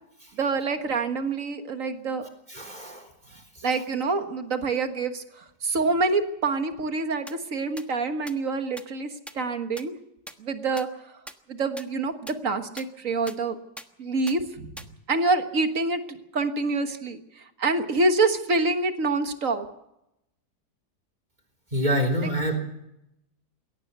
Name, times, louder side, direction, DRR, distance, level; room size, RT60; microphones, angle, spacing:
voice 1, 0.4-2.2 3.6-5.2 5.6-9.9 10.4-10.9 11.5-13.6 14.0-14.7 15.1-17.2 17.6-19.7, right 3 dB, 50° right, 8 dB, 1.8 m, -26 dB
voice 2, 2.5-3.7 21.7-22.6, equal, 25° right, 6 dB, 3.9 m, -27 dB
sound 1, 7.3-7.4 7.8-7.9 8.3-8.4 8.8-8.9 9.3-9.4 9.8-9.9 10.3-10.4 10.8-10.9 11.3-11.4 11.8-11.9 12.3-12.4 12.8-12.9 13.3-13.4 13.8-13.9 14.3-14.4 14.8-14.9, equal, ahead, 1.0 m, -39 dB
22.0 x 18.0 x 6.8 m, 0.84 s
omnidirectional pair, 1.8 m